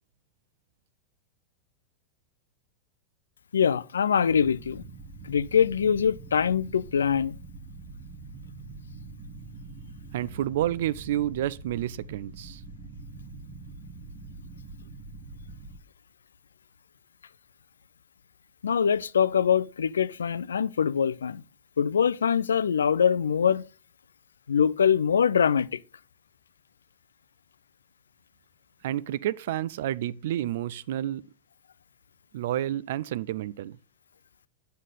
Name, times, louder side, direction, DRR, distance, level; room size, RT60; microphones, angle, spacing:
voice 1, 3.5-4.8 5.2-7.4 18.6-21.4 21.8-23.6 24.5-25.8, left 7 dB, 70° left, 0.4 m, -23 dB
sound 1, 4.3-15.8, right 3 dB, 35° right, 1.1 m, -44 dB
voice 2, 10.1-12.6 28.8-31.2 32.3-33.8, right 12 dB, 55° right, 0.4 m, -30 dB
9.1 x 6.4 x 3.8 m
figure-of-eight pair, 90°, 0 cm